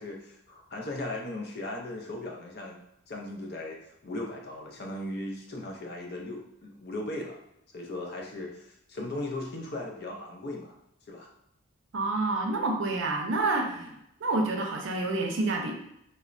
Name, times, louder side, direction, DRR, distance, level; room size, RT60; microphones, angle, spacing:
voice 1, 0.0-2.8 3.1-7.4 7.7-10.8 11.1-11.3 13.7-13.9, left 1 dB, 50° left, 0 dB, 0.5 m, -38 dB
voice 2, 11.9-13.9 14.2-15.8, right 2 dB, 60° right, 2 dB, 0.5 m, -28 dB
4.1 x 2.0 x 2.4 m, 0.79 s
head